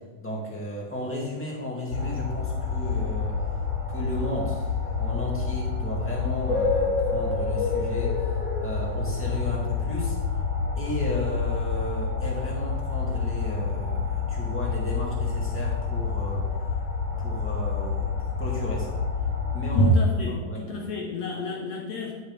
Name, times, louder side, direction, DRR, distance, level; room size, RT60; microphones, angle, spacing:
voice 1, 0.2-3.4 3.9-4.7 5.0-10.2 10.8-16.5 17.2-18.9 19.5-19.8 20.3-20.6, left 1 dB, 5° left, -4 dB, 1.5 m, -34 dB
sound 1, 1.9-19.9, left 4 dB, 25° left, 1.8 m, -28 dB
voice 2, 19.7-22.1, left 6 dB, 65° left, 0 dB, 1.7 m, -31 dB
11.0 x 7.9 x 3.5 m, 1.3 s
omnidirectional pair, 4.1 m